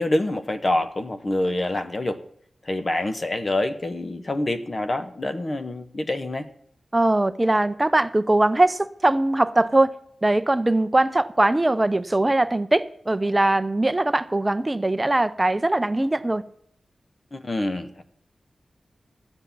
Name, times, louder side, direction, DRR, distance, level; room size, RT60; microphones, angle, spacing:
voice 1, 0.0-2.2 2.7-6.5 17.3-18.0, left 1 dB, 35° left, 1.0 m, -26 dB
voice 2, 6.9-9.9 10.2-16.4, right 2 dB, 20° right, 0.6 m, -21 dB
13.0 x 8.1 x 7.1 m
wide cardioid pair, 120°, 0 cm